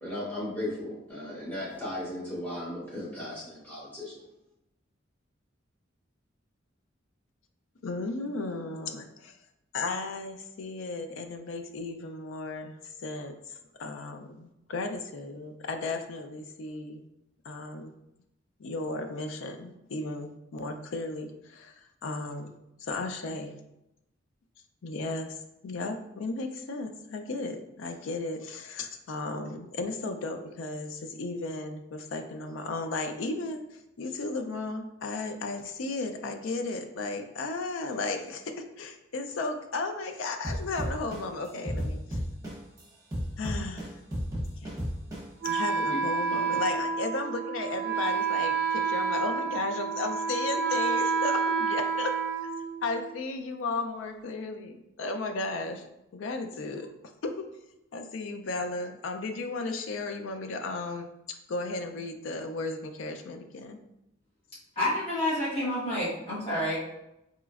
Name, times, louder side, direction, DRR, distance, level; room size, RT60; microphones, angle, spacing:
voice 1, 0.0-4.2, left 1 dB, 10° left, -8 dB, 1.4 m, -36 dB
voice 2, 7.8-9.3 9.7-13.3 13.8-17.1 17.4-17.9 18.6-21.8 22.0-22.5 22.8-23.6 24.8-25.3 25.6-33.6 34.0-42.2 43.4-44.0 45.4-52.1 52.8-55.8 56.1-56.9 57.2-57.5 57.9-63.8, left 3 dB, 85° left, 6 dB, 0.4 m, -35 dB
sound 1, 40.4-42.8 43.1-45.5, equal, 20° right, 1.0 m, -32 dB
Wind instrument woodwind instrument, 45.4-53.2, right 5 dB, 50° right, 0.3 m, -29 dB
voice 3, 64.7-66.8, left 1 dB, 30° left, -9 dB, 1.2 m, -29 dB
4.1 x 2.9 x 2.4 m, 0.87 s
head